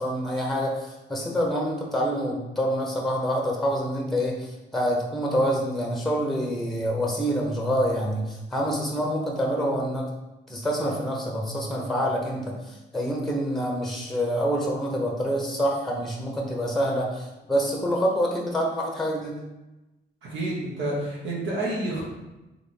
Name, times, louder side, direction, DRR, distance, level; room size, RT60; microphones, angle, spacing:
voice 1, 0.0-10.1 10.5-19.4, equal, ahead, -1 dB, 0.8 m, -26 dB
voice 2, 20.2-22.0, right 2 dB, 70° right, -5 dB, 1.2 m, -29 dB
3.5 x 3.1 x 4.2 m, 1.0 s
cardioid pair, 90°, 20 cm